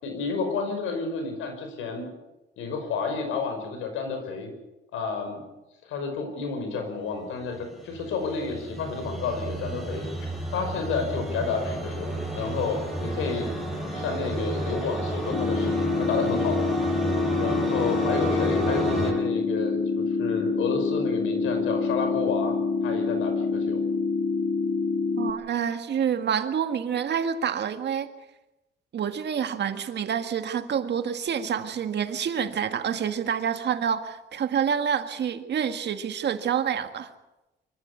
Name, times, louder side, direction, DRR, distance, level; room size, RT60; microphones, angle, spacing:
voice 1, 0.0-2.1 2.6-4.5 4.9-5.4 5.8-10.1 10.5-13.5 13.9-16.6 17.4-22.6 22.8-23.8, left 5 dB, 90° left, 6 dB, 5.6 m, -30 dB
sound 1, 7.5-19.1, right 1 dB, ahead, 7.9 m, -31 dB
sound 2, 15.3-25.3, left 4 dB, 55° left, 2.0 m, -26 dB
voice 2, 25.2-28.1 28.9-37.1, right 8 dB, 60° right, 8 dB, 1.8 m, -27 dB
25.0 x 14.5 x 8.2 m, 1.0 s
cardioid pair, 90°, 20 cm